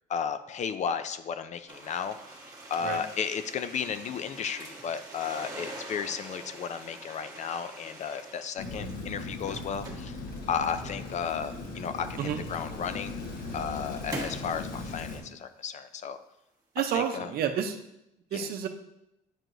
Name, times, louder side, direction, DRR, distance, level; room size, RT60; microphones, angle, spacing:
voice 1, 0.1-2.2 2.7-10.2 10.5-13.1 13.5-16.2 16.9-17.3 18.3-18.5, left 7 dB, 45° left, 11 dB, 0.4 m, -34 dB
sound 1, 1.7-8.9 9.3-11.3 12.2-12.3 13.0-14.5, right 2 dB, 20° right, 1.4 m, -44 dB
Rain, 8.6-15.2, left 2 dB, 60° left, 1.4 m, -38 dB
voice 2, 16.8-17.7 18.3-18.7, right 9 dB, 65° right, 6 dB, 0.7 m, -29 dB
8.9 x 4.6 x 2.6 m, 0.85 s
cardioid pair, 110°, 17 cm